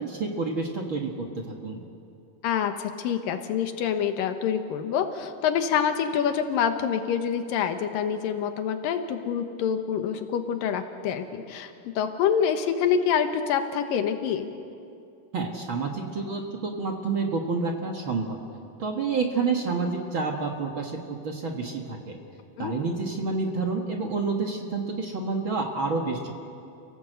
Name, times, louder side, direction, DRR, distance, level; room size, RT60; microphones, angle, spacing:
voice 1, 0.0-1.8 15.3-18.4 18.8-22.2 22.6-26.3, right 4 dB, 45° right, 2 dB, 1.8 m, -29 dB
voice 2, 2.4-14.5 22.6-22.7, left 8 dB, 85° left, 7 dB, 2.9 m, -26 dB
29.5 x 16.5 x 7.9 m, 2.5 s
omnidirectional pair, 3.9 m